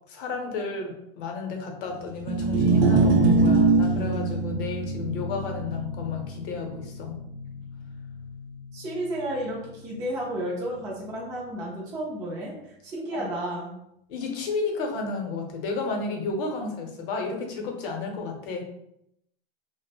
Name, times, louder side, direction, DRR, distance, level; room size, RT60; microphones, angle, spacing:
voice 1, 0.1-7.3 13.1-13.3 14.1-18.6, left 4 dB, 60° left, 2 dB, 0.7 m, -32 dB
sound 1, 2.2-8.5, right 3 dB, 80° right, 0.5 m, -24 dB
voice 2, 8.7-13.7, right 1 dB, 15° right, -5 dB, 0.3 m, -32 dB
2.5 x 2.0 x 2.7 m, 0.78 s
supercardioid pair, 155°, 31 cm